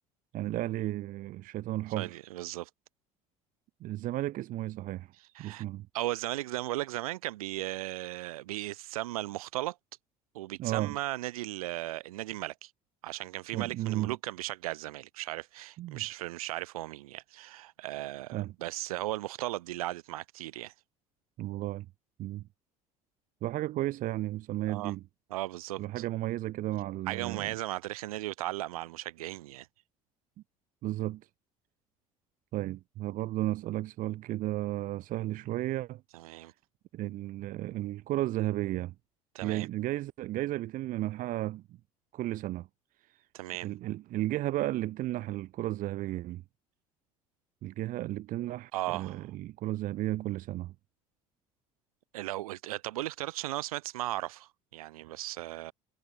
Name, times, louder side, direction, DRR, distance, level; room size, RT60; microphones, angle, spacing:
voice 1, 0.3-2.2 3.8-5.1 5.4-5.9 10.6-11.0 13.5-14.2 15.8-16.0 18.3-18.5 21.4-21.9 22.2-22.5 23.4-25.0 25.8-27.5 30.8-31.3 32.5-36.0 36.9-38.9 39.4-41.6 42.1-42.7 43.1-43.3 43.6-46.4 47.6-50.7, right 15 dB, 50° right, 0.6 m, -33 dB
voice 2, 2.0-2.7 5.3-5.6 5.9-9.8 10.3-12.7 13.0-20.7 24.7-24.9 25.3-25.8 27.1-29.7 36.1-36.5 39.3-39.7 43.3-43.7 48.7-49.3 52.1-55.7, right 16 dB, 75° right, 2.4 m, -36 dB
hypercardioid pair, 60°, 19 cm